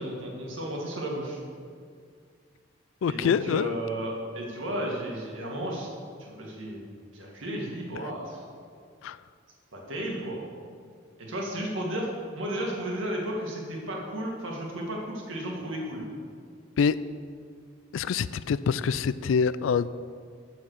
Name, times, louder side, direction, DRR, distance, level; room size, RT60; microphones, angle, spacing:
voice 1, 0.0-1.4 3.1-5.9 6.2-6.8 7.1-8.4 9.7-10.4 11.2-12.1 12.3-16.1, right 1 dB, 90° right, -2 dB, 2.1 m, -33 dB
voice 2, 3.0-3.8 9.0-9.2 16.8-17.0 17.9-19.9, left 6 dB, 90° left, 16 dB, 0.3 m, -25 dB
7.7 x 7.3 x 6.4 m, 2.1 s
head